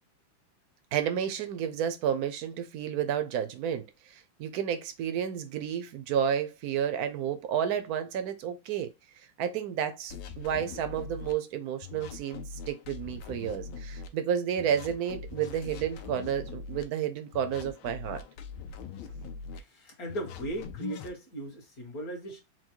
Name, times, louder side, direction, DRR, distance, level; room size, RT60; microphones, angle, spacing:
voice 1, 0.9-3.9 4.4-8.9 9.4-18.2, right 9 dB, 70° right, 0.9 m, -31 dB
sound 1, 10.1-11.3 11.8-14.1 14.6-16.8 17.3-19.6 20.1-21.1, left 5 dB, 80° left, 1.5 m, -42 dB
voice 2, 19.5-22.4, right 1 dB, 50° left, 1.8 m, -38 dB
4.6 x 2.2 x 4.4 m
omnidirectional pair, 2.2 m